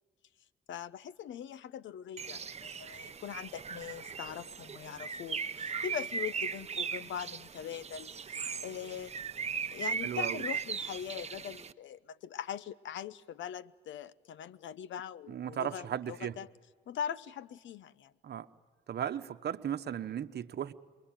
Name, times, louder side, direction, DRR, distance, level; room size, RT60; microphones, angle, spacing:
voice 1, 0.7-9.1 9.7-16.5 16.9-18.1, left 9 dB, 70° left, 18 dB, 0.9 m, -41 dB
Bird, 2.2-11.7, right 6 dB, 35° right, 0.9 m, -38 dB
voice 2, 10.0-10.4 15.3-16.4 18.2-18.5 18.9-20.7, right 9 dB, 55° right, 8 dB, 1.1 m, -36 dB
28.5 x 22.5 x 9.1 m, 1.5 s
cardioid pair, 90°, 20 cm